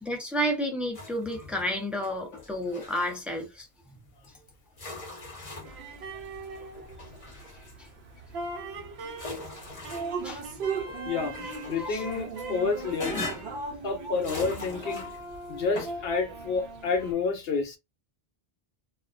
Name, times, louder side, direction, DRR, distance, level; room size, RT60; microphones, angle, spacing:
voice 1, 0.0-3.7 10.2-10.4 11.9-12.0, equal, ahead, 0.4 m, -31 dB
sound 1, 0.9-1.7 2.0-3.2 4.2-4.3 4.8-5.9 6.5-7.9 8.5-10.5 10.9-12.5 13.0-13.6 14.1-15.3 15.7-16.0, left 3 dB, 35° left, 0.8 m, -40 dB
sound 2, 5.6-17.1, right 2 dB, 85° right, 0.9 m, -42 dB
Drip, 9.9-15.1, right 5 dB, 60° right, 0.7 m, -37 dB
voice 2, 11.7-13.2 13.8-15.1 15.5-17.8, left 4 dB, 70° left, 0.8 m, -29 dB
2.4 x 2.1 x 2.4 m
omnidirectional pair, 1.1 m